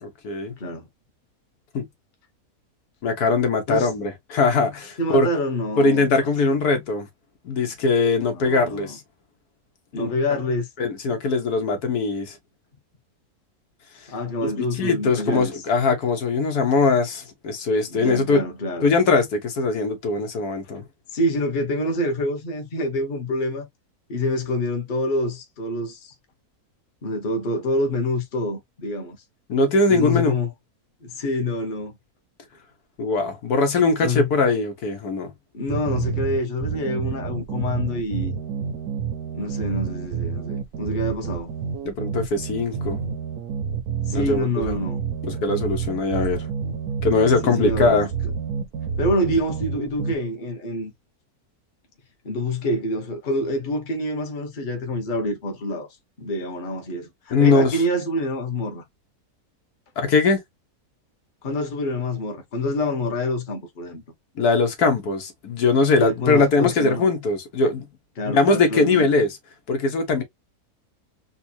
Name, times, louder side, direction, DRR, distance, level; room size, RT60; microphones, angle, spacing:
voice 1, 0.0-0.5 1.7-1.9 3.0-5.3 5.8-7.1 7.4-9.0 9.9-10.1 10.8-12.4 14.4-18.4 18.8-20.8 29.5-30.4 33.0-35.3 41.8-43.0 44.1-44.8 45.2-46.5 47.0-48.1 57.3-57.8 60.0-60.4 64.4-67.9 68.2-69.4 69.7-70.2, left 3 dB, 80° left, 1.7 m, -21 dB
voice 2, 0.6-0.9 3.7-3.9 5.0-6.3 8.3-8.9 9.9-10.7 14.1-15.5 17.9-18.9 21.1-23.7 24.1-26.1 27.0-29.2 29.9-30.5 31.0-31.9 34.0-34.3 35.5-38.4 39.3-41.5 44.1-45.0 47.4-48.1 49.0-50.9 52.2-55.9 56.2-58.8 61.4-64.0 66.0-67.1 68.2-69.1, left 1 dB, 35° left, 1.1 m, -26 dB
sound 1, 35.7-50.2, right 7 dB, 75° right, 1.2 m, -29 dB
4.3 x 2.3 x 2.8 m
omnidirectional pair, 1.6 m